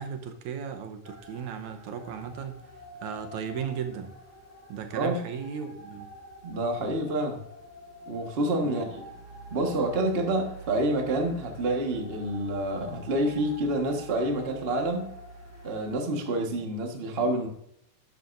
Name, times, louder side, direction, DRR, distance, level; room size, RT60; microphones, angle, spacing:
voice 1, 0.0-2.7 3.0-4.1 4.7-6.1 8.6-8.8, right 7 dB, 75° right, 6 dB, 2.2 m, -36 dB
sound 1, 1.0-15.9, right 1 dB, 15° right, 0.6 m, -46 dB
voice 2, 6.4-7.4 8.1-9.0 9.5-15.1 15.6-17.5, right 1 dB, 55° right, 2 dB, 0.6 m, -28 dB
11.5 x 9.1 x 2.6 m, 0.72 s
omnidirectional pair, 3.5 m